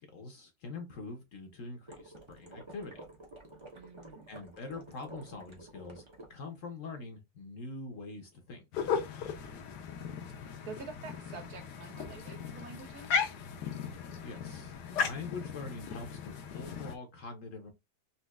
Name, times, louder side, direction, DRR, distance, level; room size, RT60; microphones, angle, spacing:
voice 1, 0.0-2.9 4.3-8.6 14.2-17.7, left 3 dB, 60° left, 0.9 m, -44 dB
sound 1, 1.9-6.3, right 1 dB, 30° right, 0.5 m, -51 dB
voice 2, 3.7-4.3 9.3-9.5 10.7-13.2, right 5 dB, 70° right, 1.2 m, -47 dB
sound 2, 8.7-17.0, left 6 dB, 80° left, 1.2 m, -36 dB
4.2 x 2.5 x 2.2 m
omnidirectional pair, 1.8 m